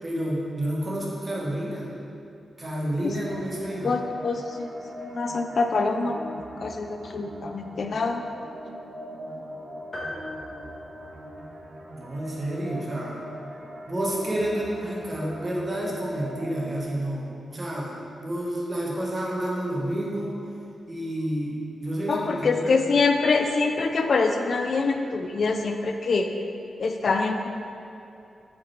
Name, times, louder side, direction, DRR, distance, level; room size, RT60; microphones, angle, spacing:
voice 1, 0.0-1.9 2.6-3.9 11.9-13.2 13.9-17.9 18.2-20.3 20.9-22.7, right 1 dB, 35° right, -4 dB, 1.2 m, -29 dB
sound 1, 3.0-16.8, equal, 55° right, 0.6 m, -42 dB
voice 2, 3.8-4.7 5.0-8.2 22.1-26.3 26.8-27.5, left 4 dB, 55° left, 5 dB, 0.3 m, -25 dB
sound 2, 9.9-11.7, left 1 dB, 40° left, 1.2 m, -40 dB
5.3 x 4.1 x 4.4 m, 2.6 s
cardioid pair, 90°, 0 cm